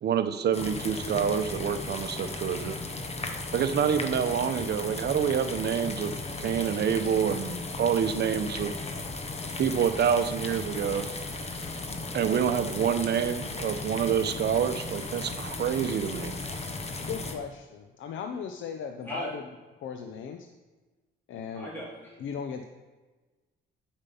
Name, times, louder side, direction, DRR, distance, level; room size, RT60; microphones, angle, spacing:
voice 1, 0.0-2.8 3.5-8.7 9.6-11.1 12.1-16.3, right 8 dB, 55° right, 9 dB, 0.8 m, -27 dB
sound 1, 0.5-17.3, left 3 dB, 30° left, 1.1 m, -36 dB
voice 2, 17.1-19.4 19.8-20.5 21.3-21.7 22.2-22.6, left 6 dB, 75° left, 6 dB, 0.7 m, -37 dB
voice 3, 21.5-22.2, right 1 dB, 10° left, -5 dB, 2.4 m, -38 dB
8.8 x 5.4 x 5.6 m, 1.3 s
cardioid pair, 90°, 20 cm